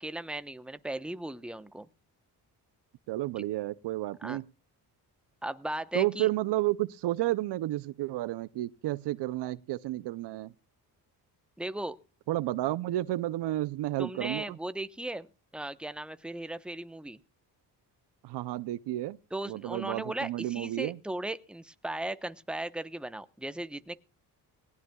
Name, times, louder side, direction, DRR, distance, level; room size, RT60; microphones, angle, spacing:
voice 1, 0.0-1.9 4.2-4.4 5.4-6.3 11.6-12.0 14.0-15.3 15.5-17.2 19.3-24.0, right 1 dB, ahead, 0.9 m, -37 dB
voice 2, 3.1-4.4 5.9-10.5 12.3-14.6 18.2-19.2 19.5-21.0, right 15 dB, 80° right, 0.6 m, -31 dB
19.0 x 17.5 x 2.3 m
cardioid pair, 80°, 41 cm